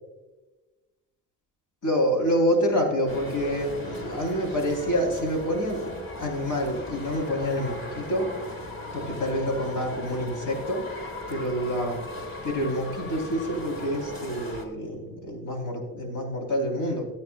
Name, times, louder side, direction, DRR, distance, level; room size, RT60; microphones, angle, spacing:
voice 1, 1.8-5.9 6.2-8.3 8.9-10.8 11.3-12.0 12.4-17.1, equal, 80° left, 2 dB, 3.9 m, -27 dB
sound 1, 3.1-14.6, left 1 dB, 40° left, 2.4 m, -38 dB
19.0 x 8.7 x 2.4 m, 1.2 s
cardioid pair, 80°, 32 cm